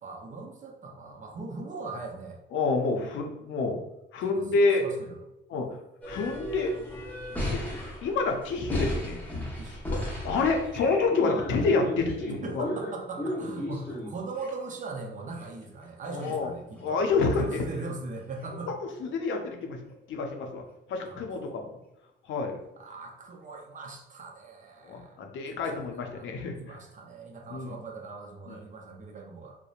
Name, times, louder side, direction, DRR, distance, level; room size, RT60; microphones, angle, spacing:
voice 1, 0.0-2.4 4.2-5.2 9.6-9.9 12.4-18.7 21.1-21.3 22.8-25.2 25.5-26.3 26.6-29.6, right 3 dB, 40° right, 1 dB, 0.6 m, -40 dB
voice 2, 2.5-3.8 4.1-4.8 5.5-5.7 6.1-6.7 7.5-7.6 8.0-9.2 9.9-10.0 10.2-12.7 16.1-16.5 16.8-17.6 18.7-18.8 19.0-19.8 20.1-20.6 20.9-21.7 22.3-22.6 24.8-26.8 27.5-27.8 28.5-28.6, left 3 dB, 75° left, 3 dB, 0.5 m, -28 dB
sound 1, 6.0-14.5 15.4-15.5 15.8-15.9 16.2-16.3 16.8-16.9 18.4-18.5, equal, 10° left, 0.8 m, -34 dB
2.8 x 2.1 x 2.4 m, 0.91 s
cardioid pair, 90°, 20 cm